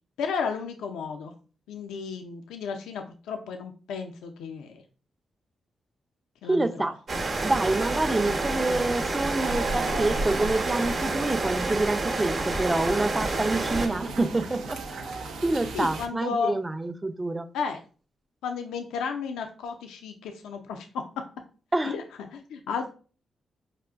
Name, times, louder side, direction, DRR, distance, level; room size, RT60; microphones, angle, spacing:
voice 1, 0.2-1.3 1.7-4.8 6.4-6.9 15.7-16.6 17.5-17.8 18.4-21.0 21.8-22.0 22.3-22.9, left 5 dB, 90° left, 0.4 m, -33 dB
voice 2, 6.4-6.9 7.4-17.5 21.7-22.0, right 2 dB, 25° right, 0.4 m, -27 dB
sound 1, 7.1-13.9, right 2 dB, 55° right, 0.8 m, -28 dB
sound 2, 9.4-16.1, right 4 dB, 85° right, 0.5 m, -37 dB
4.9 x 2.4 x 2.3 m
supercardioid pair, 55°, 0 cm